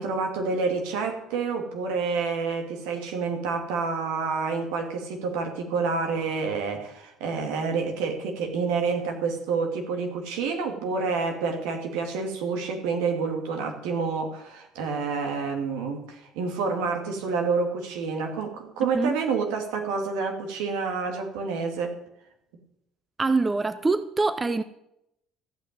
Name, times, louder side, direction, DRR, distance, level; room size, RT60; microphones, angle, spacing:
voice 1, 0.0-22.0, right 4 dB, 80° right, 2.4 m, -28 dB
voice 2, 23.2-24.6, right 3 dB, 25° right, 0.8 m, -24 dB
14.5 x 6.2 x 9.2 m
supercardioid pair, 65°, 0 cm